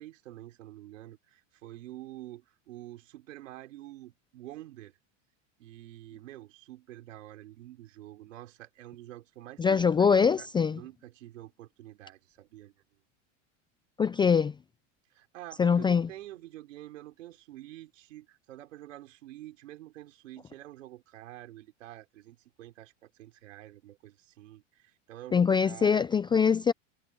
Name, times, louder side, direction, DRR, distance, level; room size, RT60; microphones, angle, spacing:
voice 1, 0.0-5.0 5.6-12.7 15.1-26.1, right 14 dB, 90° right, 5.3 m, -48 dB
voice 2, 9.6-10.8 14.0-14.5 15.6-16.1 25.3-26.7, left 6 dB, 15° left, 0.4 m, -23 dB
supercardioid pair, 120°, 37 cm